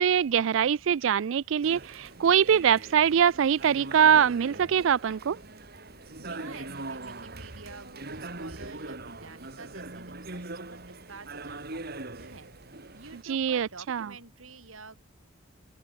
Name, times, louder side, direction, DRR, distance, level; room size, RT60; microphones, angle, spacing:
voice 1, 0.0-5.4 13.2-14.1, right 8 dB, 70° right, 0.4 m, -23 dB
sound 1, 1.6-13.2, right 2 dB, 50° right, 2.8 m, -42 dB
voice 2, 6.2-12.5 12.9-15.0, right 4 dB, 85° right, 4.7 m, -48 dB
open air
head